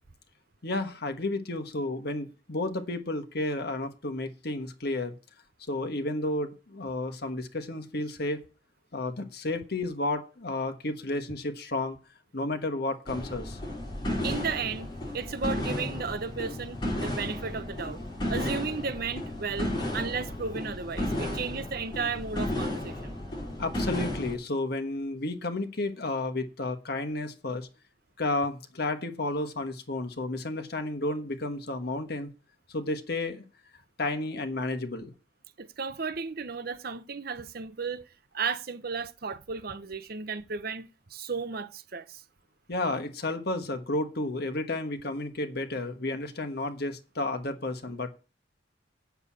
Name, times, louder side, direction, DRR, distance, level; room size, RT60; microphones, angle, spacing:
voice 1, 0.6-5.2 5.7-8.4 8.9-12.0 12.3-13.6 23.6-27.7 28.2-32.3 32.7-33.4 34.0-35.1 42.7-48.1, left 2 dB, 50° left, 1.3 m, -32 dB
sound 1, 13.1-24.3, left 1 dB, 25° left, 5.3 m, -33 dB
voice 2, 14.2-18.0 18.3-23.2 35.6-38.1 38.3-42.2, right 5 dB, 50° right, 0.7 m, -34 dB
8.0 x 7.1 x 8.6 m
head